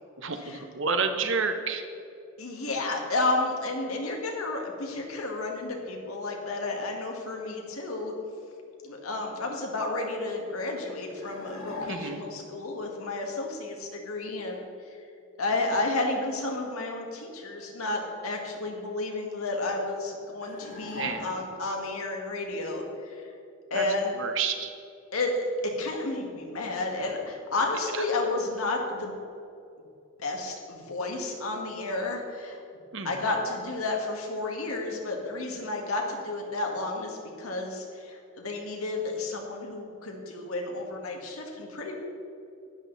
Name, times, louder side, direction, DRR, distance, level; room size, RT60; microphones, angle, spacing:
voice 1, 0.2-1.8 11.9-12.2 20.9-21.3 23.7-23.8 24.2-24.7 32.9-33.1, right 5 dB, 65° right, 6 dB, 1.1 m, -29 dB
voice 2, 2.4-8.1 8.8-14.7 15.4-23.3 23.7-24.2 25.1-25.3 25.6-29.1 30.2-32.6 33.0-42.0, left 2 dB, 90° left, 1 dB, 2.1 m, -31 dB
sound 1, 11.2-12.4 20.4-21.7, left 2 dB, 70° left, 2.6 m, -41 dB
12.0 x 11.0 x 4.1 m, 2.7 s
head